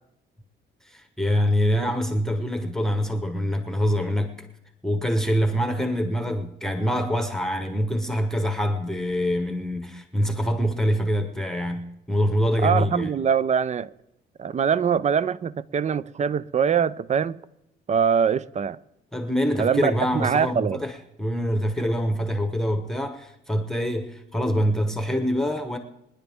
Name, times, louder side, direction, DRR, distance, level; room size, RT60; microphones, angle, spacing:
voice 1, 0.9-4.4 4.8-13.1 19.1-25.8, equal, ahead, 1.1 m, -25 dB
voice 2, 12.6-13.9 14.4-17.4 17.9-18.8 19.6-20.8, right 7 dB, 35° right, 0.5 m, -23 dB
22.5 x 10.0 x 3.6 m
cardioid pair, 90°, 20 cm